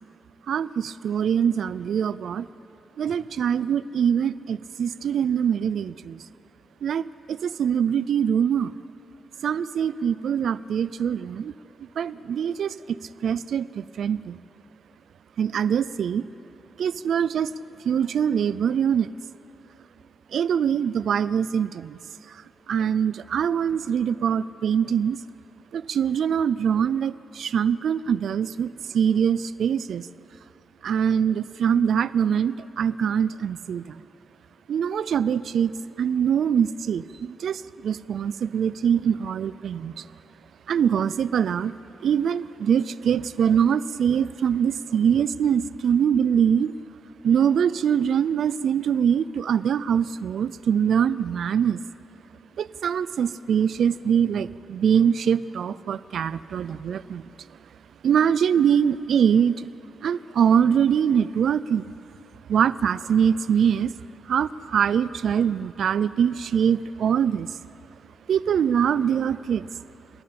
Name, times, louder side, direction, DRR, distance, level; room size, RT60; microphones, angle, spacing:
voice 1, 0.5-2.4 3.0-6.2 6.8-8.7 9.4-11.5 12.0-14.4 15.4-16.3 16.8-17.5 17.8-19.1 20.3-22.0 22.3-22.4 22.7-25.2 25.7-30.1 30.8-34.0 34.7-35.7 36.0-40.0 40.7-41.7 42.0-46.7 47.2-51.8 52.6-57.2 58.0-59.7 60.0-61.9 62.5-63.9 64.3-67.5 68.3-69.6, right 8 dB, 80° right, 17 dB, 0.4 m, -23 dB
29.0 x 11.0 x 8.7 m, 2.8 s
cardioid pair, 90°, 0 cm